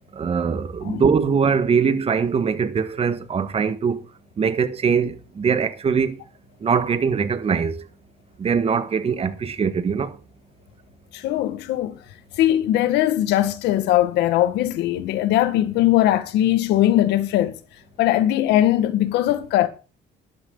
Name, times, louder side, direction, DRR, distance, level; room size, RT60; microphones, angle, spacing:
voice 1, 0.2-4.0 4.4-6.2 6.6-7.8 8.4-10.1, right 6 dB, 35° right, 1.6 m, -22 dB
voice 2, 11.1-12.0 12.4-17.6 18.0-19.7, left 13 dB, 85° left, 1.8 m, -20 dB
12.5 x 12.0 x 4.0 m
cardioid pair, 110°, 17 cm